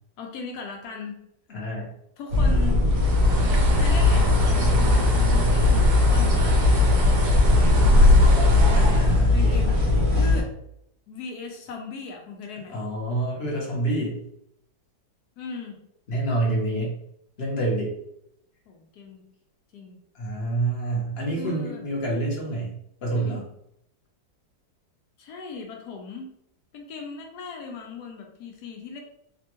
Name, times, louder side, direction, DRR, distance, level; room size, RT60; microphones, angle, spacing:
voice 1, 0.2-1.2 2.2-2.9 3.7-8.8 9.3-9.8 10.1-10.5 11.1-12.8 15.4-15.8 18.7-19.2 19.7-20.0 21.4-21.8 23.1-23.4 25.2-26.3 26.7-29.0, left 5 dB, 75° left, 2 dB, 1.1 m, -38 dB
voice 2, 1.5-1.9 8.7-9.6 12.7-14.2 16.1-16.9 17.4-17.9 20.1-22.7 23.0-23.4, right 2 dB, 45° left, -3 dB, 0.9 m, -27 dB
sound 1, 2.3-10.4, left 2 dB, 50° right, 0.9 m, -21 dB
Bird, 2.9-9.2, left 2 dB, 90° right, 1.3 m, -20 dB
3.3 x 2.1 x 2.9 m, 0.76 s
omnidirectional pair, 1.8 m